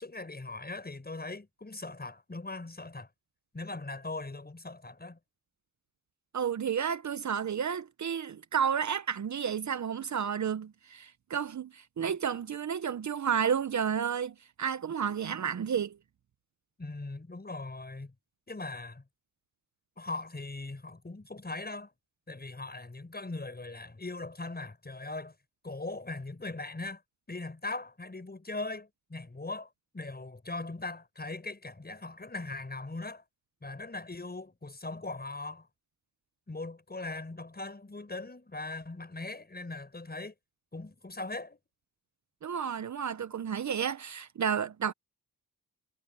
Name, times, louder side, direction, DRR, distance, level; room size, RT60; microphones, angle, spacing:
voice 1, 0.0-3.1 3.5-5.2 16.8-18.1 18.5-19.0 20.0-21.9 22.3-25.3 25.6-27.0 27.3-33.2 33.6-35.7 36.5-40.3 40.7-41.6, left 2 dB, 25° left, 6.1 m, -40 dB
voice 2, 6.3-16.0 42.4-44.9, right 7 dB, 50° right, 0.9 m, -31 dB
cardioid pair, 60°, 37 cm